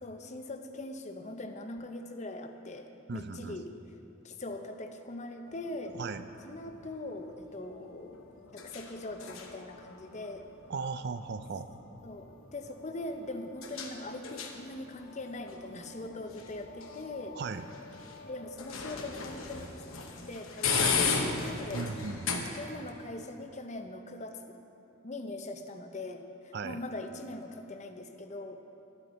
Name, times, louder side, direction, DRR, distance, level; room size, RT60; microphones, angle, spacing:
voice 1, 0.0-3.7 4.2-6.0 6.5-8.2 8.5-10.5 12.0-17.4 18.2-19.8 20.3-21.2 21.4-21.8 22.6-24.6 25.0-28.6, left 2 dB, 35° left, 6 dB, 0.6 m, -41 dB
voice 2, 3.1-3.6 5.9-6.3 10.7-11.7 17.3-17.7 20.7-21.0 21.7-22.5 26.5-26.8, right 4 dB, 55° right, 11 dB, 0.4 m, -37 dB
sound 1, 5.5-22.9, left 5 dB, 85° left, 1.0 m, -38 dB
12.0 x 10.5 x 4.1 m, 2.7 s
head